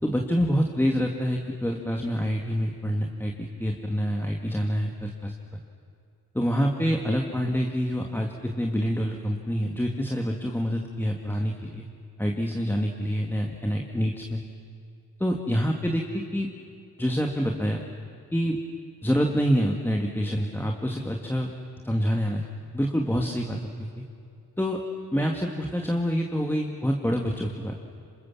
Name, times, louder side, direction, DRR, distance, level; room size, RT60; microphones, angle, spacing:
voice 1, 0.0-5.3 6.3-11.9 12.2-14.5 15.2-16.5 17.0-17.8 18.3-18.6 19.0-21.5 21.8-22.4 22.7-24.0 24.6-24.8 25.1-27.8, equal, 5° left, 1 dB, 2.1 m, -26 dB
27.0 x 26.0 x 7.3 m, 2.3 s
cardioid pair, 80°, 36 cm